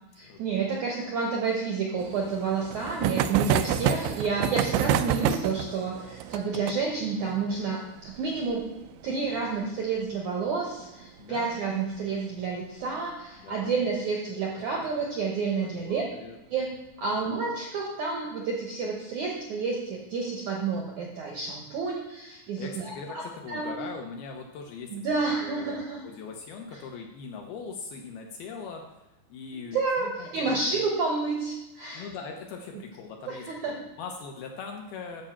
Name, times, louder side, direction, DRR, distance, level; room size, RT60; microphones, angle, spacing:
voice 1, 0.2-8.8 9.0-16.0 16.5-23.2 23.5-23.8 24.9-26.0 29.7-32.1 33.3-33.8, right 4 dB, 70° right, -1 dB, 1.8 m, -30 dB
sound 1, 2.0-11.2 11.5-11.6 11.8-11.9 12.2-12.3 13.7-13.9 14.6-15.0, right 9 dB, 90° right, 2.9 m, -29 dB
voice 2, 11.2-11.6 13.4-13.8 15.6-16.4 17.0-17.5 22.6-25.8 26.0-30.9 31.9-35.2, left 5 dB, 75° left, 2 dB, 2.5 m, -41 dB
10.0 x 5.5 x 7.2 m, 0.97 s
omnidirectional pair, 5.2 m